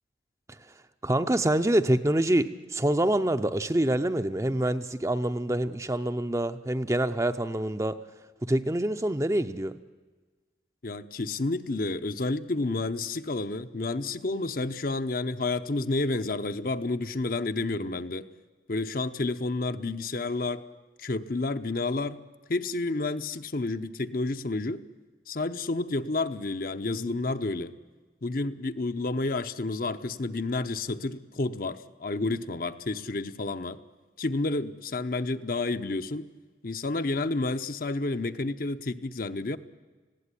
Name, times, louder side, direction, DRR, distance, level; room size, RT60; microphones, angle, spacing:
voice 1, 1.0-8.0 8.4-9.8, right 1 dB, 15° right, 9 dB, 0.6 m, -26 dB
voice 2, 10.8-18.3 18.7-20.6 21.0-22.2 22.5-24.8 25.3-27.7 28.2-33.8 34.2-36.3 36.6-39.6, left 2 dB, 50° left, 9 dB, 0.8 m, -30 dB
19.5 x 16.0 x 9.8 m, 1.3 s
head